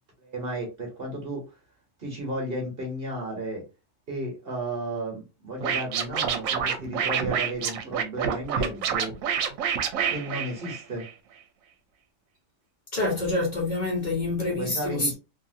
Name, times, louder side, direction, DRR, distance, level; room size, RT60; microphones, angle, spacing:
voice 1, 0.2-1.4 2.0-3.6 4.1-9.1 10.1-11.0 14.5-15.1, right 1 dB, 45° right, 1.1 m, -33 dB
Scratching (performance technique), 5.6-11.1, right 7 dB, 85° right, 1.0 m, -27 dB
voice 2, 12.9-15.1, left 2 dB, 35° left, 1.1 m, -27 dB
2.8 x 2.7 x 2.5 m
omnidirectional pair, 1.4 m